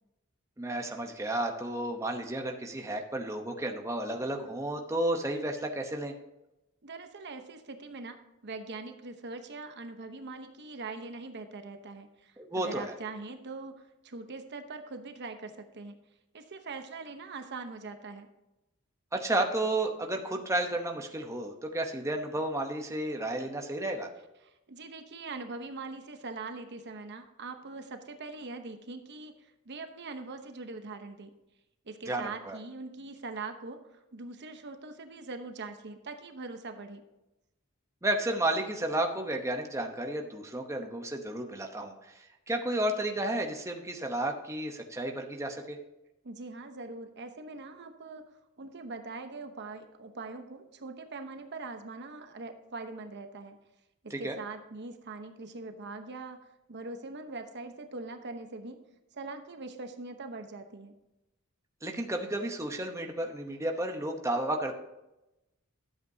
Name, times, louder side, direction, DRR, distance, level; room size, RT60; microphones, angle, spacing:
voice 1, 0.6-6.1 12.4-12.9 19.1-24.1 32.0-32.6 38.0-45.8 54.1-54.3 61.8-64.7, right 1 dB, 15° right, 3 dB, 0.9 m, -32 dB
voice 2, 6.8-16.0 16.3-18.3 24.4-31.3 31.9-37.0 46.2-48.2 48.6-53.6 54.0-56.4 56.7-58.8 59.1-60.9, right 3 dB, 55° right, 7 dB, 0.9 m, -42 dB
12.5 x 7.9 x 2.8 m, 0.94 s
head